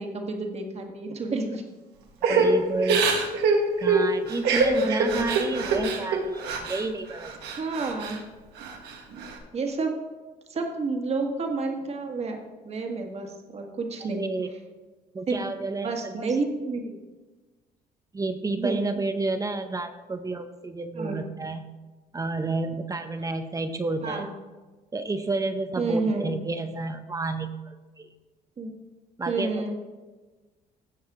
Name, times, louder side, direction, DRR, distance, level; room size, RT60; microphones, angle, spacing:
voice 1, 0.0-1.6 4.7-5.1 7.6-8.2 9.5-9.9 10.5-12.4 12.6-14.2 15.3-15.4 15.8-16.9 18.6-18.9 21.0-21.2 24.0-24.3 25.8-26.3 28.6-28.7 29.3-29.7, right 3 dB, 40° right, 3 dB, 1.7 m, -29 dB
Crying sobbing / Breathing, 2.2-6.8 7.2-8.2 8.6-9.3, right 3 dB, 80° right, 1.5 m, -24 dB
voice 2, 2.3-3.1 3.8-7.6 14.0-14.5 15.1-16.3 16.6-16.8 18.1-21.7 22.1-24.2 24.9-28.1 29.2-29.7, right 3 dB, 20° right, 8 dB, 0.7 m, -30 dB
16.0 x 5.6 x 3.7 m, 1.2 s
cardioid pair, 110°, 17 cm